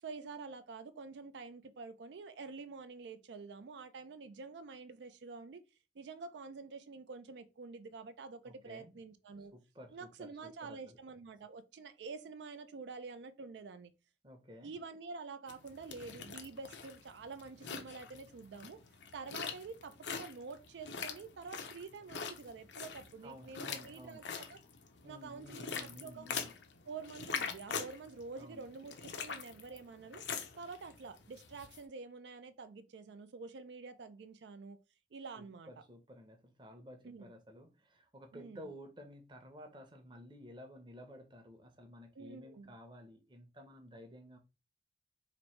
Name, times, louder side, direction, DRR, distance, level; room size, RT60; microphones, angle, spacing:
voice 1, 0.0-5.6 6.0-9.5 9.9-13.9 14.6-18.8 19.1-24.6 25.0-26.3 26.9-30.2 30.5-34.8 35.1-35.7 37.0-37.3 38.3-38.7 42.2-42.7, right 4 dB, 80° right, 0.4 m, -48 dB
voice 2, 8.5-8.9 9.5-11.0 14.2-14.7 23.2-24.3 25.0-26.5 28.4-28.7 35.4-44.4, equal, 25° right, 0.7 m, -53 dB
sound 1, 15.5-31.8, left 6 dB, 85° left, 0.6 m, -44 dB
3.0 x 2.6 x 4.3 m
head